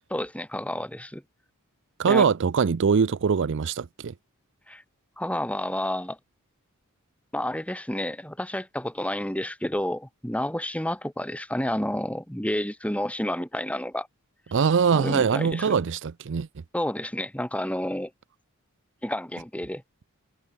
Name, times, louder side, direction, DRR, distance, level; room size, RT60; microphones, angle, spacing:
voice 1, 0.1-1.2 2.0-2.3 4.7-4.8 5.2-6.2 7.3-14.1 14.9-15.8 16.7-18.1 19.0-19.8, left 1 dB, 5° left, 3.5 m, -30 dB
voice 2, 2.0-4.1 14.5-16.5, right 6 dB, 55° right, 0.5 m, -22 dB
head